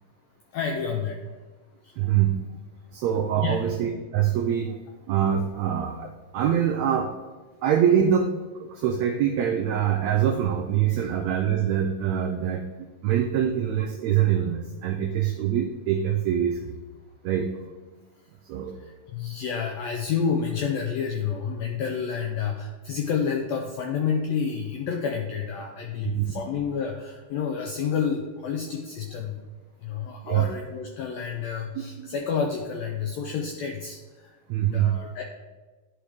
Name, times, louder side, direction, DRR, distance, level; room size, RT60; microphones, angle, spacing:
voice 1, 0.5-1.4 1.8-2.0 3.4-3.7 10.9-11.1 18.7-29.4 29.8-34.4 34.6-35.2, left 6 dB, 80° left, 2 dB, 1.5 m, -29 dB
voice 2, 2.0-2.4 2.9-4.8 5.1-7.1 7.6-8.3 8.5-12.7 13.0-16.7 17.2-17.5 18.5-18.8 26.1-26.3 30.2-30.4 31.8-32.1 34.5-34.9, right 9 dB, 90° right, 4 dB, 1.5 m, -24 dB
10.5 x 4.8 x 3.5 m, 1.3 s
omnidirectional pair, 3.8 m